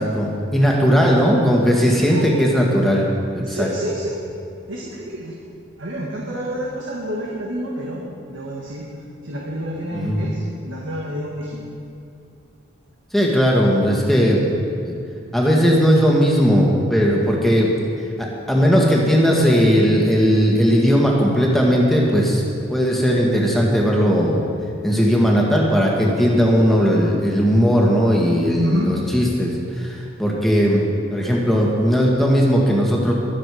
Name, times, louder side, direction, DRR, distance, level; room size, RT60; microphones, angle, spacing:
voice 1, 0.0-3.1 3.3-3.7 9.9-10.2 13.1-14.5 14.8-14.9 15.3-17.7 18.2-22.4 22.7-24.5 24.8-30.8 31.1-33.1, equal, ahead, -3 dB, 1.9 m, -17 dB
voice 2, 1.9-2.3 3.4-4.2 4.7-5.4 5.8-8.0 8.3-8.8 9.2-11.6 28.6-28.9, right 1 dB, 70° right, -3 dB, 1.7 m, -29 dB
22.0 x 7.9 x 4.9 m, 2.5 s
head